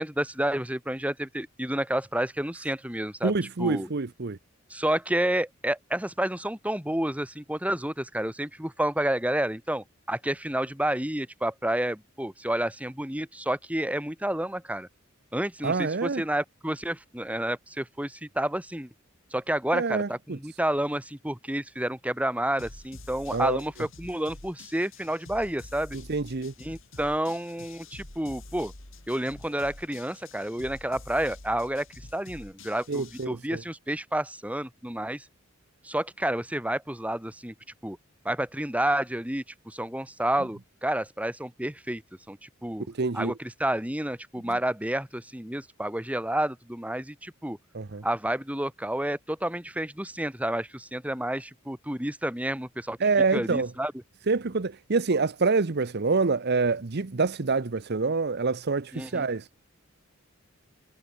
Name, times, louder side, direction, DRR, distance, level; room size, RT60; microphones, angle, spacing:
voice 1, 0.0-3.9 4.7-14.9 15.3-18.9 19.3-26.0 26.6-28.7 29.1-35.2 35.8-37.5 37.8-38.0 38.2-42.0 42.3-42.9 43.1-47.6 48.0-53.0 53.3-53.9 58.9-59.3, right 1 dB, 5° right, 3.2 m, -30 dB
voice 2, 3.2-4.4 15.6-16.2 19.7-20.4 23.3-23.6 26.1-26.5 32.9-33.6 43.0-43.3 47.7-48.0 53.0-53.7 54.3-59.4, right 4 dB, 55° right, 0.8 m, -26 dB
sound 1, 22.6-33.2, left 2 dB, 70° left, 3.5 m, -47 dB
head